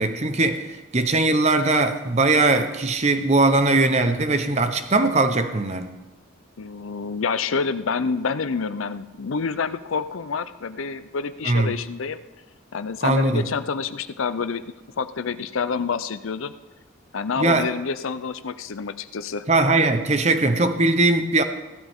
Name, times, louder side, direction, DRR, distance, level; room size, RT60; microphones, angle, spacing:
voice 1, 0.0-5.9 11.4-11.8 13.0-13.5 17.4-17.7 19.5-21.4, right 2 dB, 30° right, 8 dB, 0.8 m, -20 dB
voice 2, 6.6-12.2 12.7-16.5 17.1-19.4, left 5 dB, 75° left, 13 dB, 0.5 m, -28 dB
15.5 x 12.5 x 3.6 m, 1.1 s
head